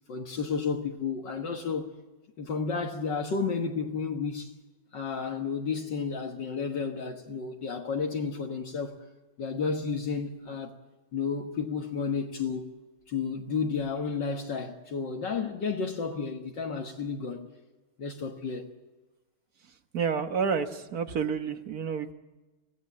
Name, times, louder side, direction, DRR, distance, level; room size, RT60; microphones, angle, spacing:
voice 1, 0.1-1.9 2.4-4.5 4.9-9.0 9.4-10.8 11.1-12.7 13.1-17.5 18.0-18.7, left 5 dB, 60° left, 2.1 m, -32 dB
voice 2, 19.9-22.1, right 6 dB, 50° right, 1.7 m, -29 dB
24.5 x 17.5 x 8.6 m
omnidirectional pair, 2.2 m